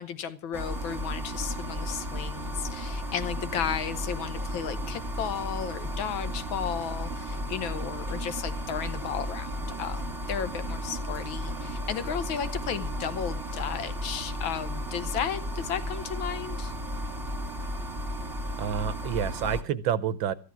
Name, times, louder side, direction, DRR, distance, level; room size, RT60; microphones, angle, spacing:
voice 1, 0.0-16.7, left 8 dB, 70° left, 12 dB, 1.6 m, -34 dB
sound 1, 0.5-19.6, equal, 10° right, 1.6 m, -34 dB
voice 2, 18.6-20.3, right 8 dB, 70° right, 15 dB, 1.5 m, -28 dB
14.0 x 11.5 x 6.0 m, 0.35 s
omnidirectional pair, 2.4 m